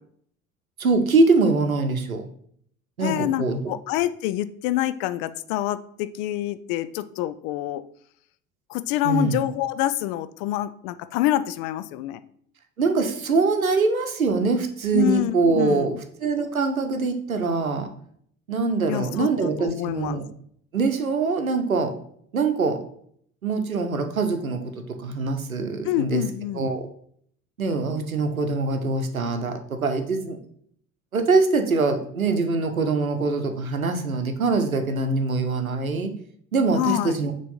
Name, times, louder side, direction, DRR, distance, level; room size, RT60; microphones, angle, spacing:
voice 1, 0.8-2.3 3.0-3.7 9.0-9.4 12.8-17.9 18.5-20.2 20.7-22.0 22.3-22.8 23.4-26.2 26.5-26.9 27.6-30.4 31.1-36.1 36.5-37.3, right 3 dB, 90° right, 7 dB, 0.7 m, -23 dB
voice 2, 3.0-7.8 8.7-12.2 14.9-16.0 18.9-20.2 25.8-26.7 36.7-37.2, left 13 dB, 50° left, 13 dB, 0.5 m, -26 dB
6.7 x 3.1 x 5.4 m, 0.64 s
figure-of-eight pair, 65°, 40 cm